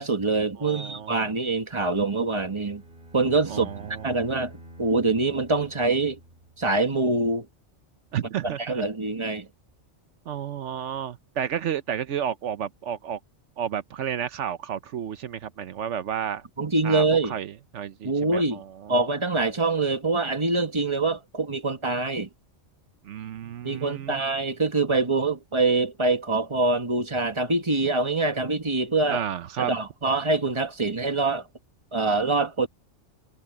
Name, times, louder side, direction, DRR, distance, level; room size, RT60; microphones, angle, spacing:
voice 1, 0.0-2.8 3.1-3.7 4.0-4.5 4.8-6.2 6.6-7.5 8.6-9.5 16.6-17.3 18.0-18.6 18.9-22.3 23.6-29.2 29.6-31.4 31.9-32.7, right 3 dB, 25° right, 1.7 m, -24 dB
voice 2, 0.6-1.3 3.5-4.1 8.1-8.9 10.3-13.2 13.6-16.4 16.8-19.1 23.0-24.2 29.1-29.7, right 9 dB, 85° right, 1.1 m, -32 dB
Bowed string instrument, 2.1-6.9, equal, 55° right, 3.8 m, -48 dB
omnidirectional pair, 1.2 m